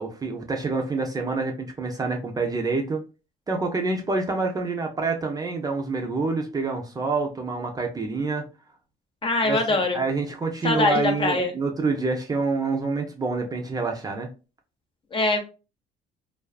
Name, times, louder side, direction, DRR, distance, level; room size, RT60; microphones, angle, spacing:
voice 1, 0.0-3.0 3.5-8.5 9.4-14.3, right 3 dB, 20° right, 2 dB, 0.5 m, -27 dB
voice 2, 9.2-10.0 10.6-11.5 15.1-15.4, left 2 dB, 30° left, 4 dB, 0.6 m, -23 dB
2.3 x 2.3 x 2.3 m, 0.31 s
cardioid pair, 110°, 17 cm